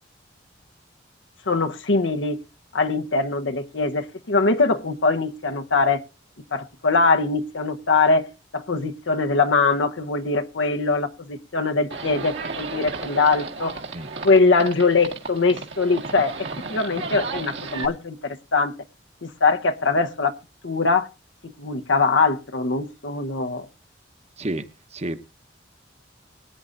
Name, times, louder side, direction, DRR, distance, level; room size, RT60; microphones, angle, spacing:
voice 1, 1.5-2.4 2.7-6.0 6.5-8.2 8.5-13.7 14.2-16.3 16.7-18.7 19.2-20.3 20.6-21.1 21.4-23.7, left 3 dB, 80° left, 1.0 m, -22 dB
Livestock farm animals working animals, 11.9-17.9, right 4 dB, 70° right, 1.9 m, -33 dB
voice 2, 13.9-14.1 24.4-24.6 24.9-25.2, right 1 dB, 35° right, 1.0 m, -29 dB
20.5 x 9.8 x 2.5 m
head